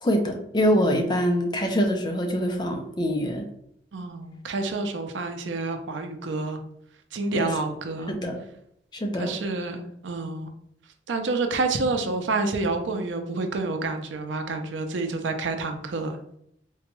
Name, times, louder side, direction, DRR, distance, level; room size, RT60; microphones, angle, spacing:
voice 1, 0.0-3.4 7.3-7.5 8.1-8.4 8.9-9.3, equal, 25° left, 4 dB, 0.4 m, -24 dB
voice 2, 3.9-6.6 7.1-8.2 9.2-10.5 11.1-16.2, right 3 dB, 80° right, 5 dB, 0.5 m, -28 dB
3.8 x 2.2 x 3.0 m, 0.74 s
head